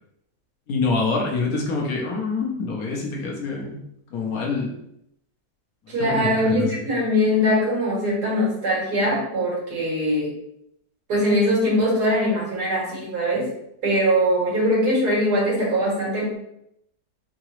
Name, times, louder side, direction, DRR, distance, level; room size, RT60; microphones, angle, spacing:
voice 1, 0.7-3.8 4.1-4.7 6.0-6.9, left 3 dB, 65° left, 0 dB, 1.4 m, -26 dB
voice 2, 5.9-10.3 11.1-13.5 13.8-16.4, equal, 80° right, -5 dB, 2.5 m, -21 dB
4.8 x 2.9 x 3.1 m, 0.77 s
omnidirectional pair, 1.7 m